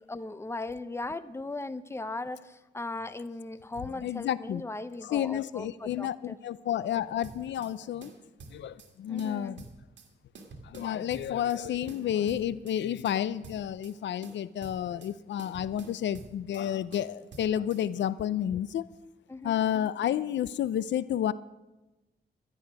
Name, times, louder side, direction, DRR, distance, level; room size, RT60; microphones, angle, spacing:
voice 1, 0.0-6.4 9.1-9.6 19.3-19.6, left 2 dB, 15° left, 13 dB, 0.7 m, -38 dB
voice 2, 4.0-4.6 5.0-8.1 8.5-9.6 10.6-18.8 19.4-21.3, left 10 dB, 85° left, 17 dB, 0.5 m, -30 dB
sound 1, 7.2-7.7 8.0-8.9 9.2-10.1 10.4-11.6 11.9-12.8 13.1-14.0 14.2-15.1 15.4-16.7 16.9-17.8, right 3 dB, 85° right, 1.9 m, -48 dB
13.0 x 11.0 x 6.1 m, 1.0 s
cardioid pair, 85°, 18 cm